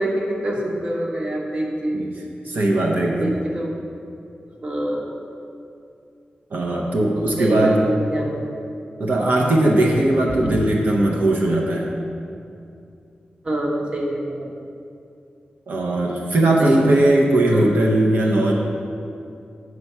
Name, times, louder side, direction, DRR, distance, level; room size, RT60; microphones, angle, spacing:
voice 1, 0.0-2.0 3.0-3.7 4.6-5.1 7.1-8.6 10.3-10.5 13.4-14.5 16.6-17.0 17.5-17.7, right 1 dB, 30° right, -1 dB, 1.0 m, -26 dB
voice 2, 2.4-3.4 6.5-7.8 9.0-11.9 15.7-18.5, right 1 dB, 65° right, -1 dB, 0.8 m, -19 dB
8.4 x 4.6 x 5.5 m, 2.5 s
wide cardioid pair, 155°, 3 cm